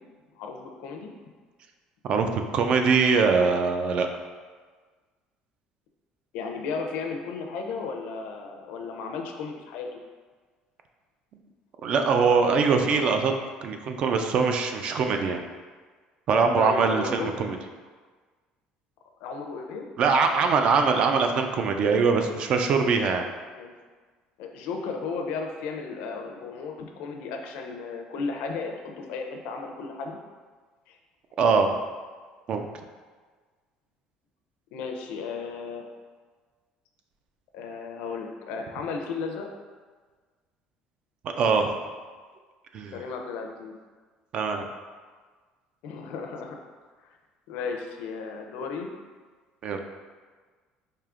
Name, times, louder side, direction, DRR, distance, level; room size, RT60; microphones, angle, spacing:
voice 1, 0.3-1.1 6.3-10.0 16.6-17.3 19.2-19.9 22.1-22.4 23.1-23.2 23.6-23.7 24.4-30.2 30.9-31.0 34.7-35.9 37.5-39.5 42.9-43.7 45.8-46.6 47.5-48.9, left 4 dB, 75° left, 3 dB, 0.5 m, -34 dB
voice 2, 2.0-4.1 11.8-13.3 13.6-15.4 16.3-17.6 20.0-23.2 31.4-31.8 32.5-32.7 41.2-41.7 42.7-43.0 44.3-44.7 49.6-49.8, right 5 dB, 45° right, 5 dB, 0.3 m, -23 dB
4.8 x 2.7 x 2.4 m, 1.5 s
cardioid pair, 150°, 2 cm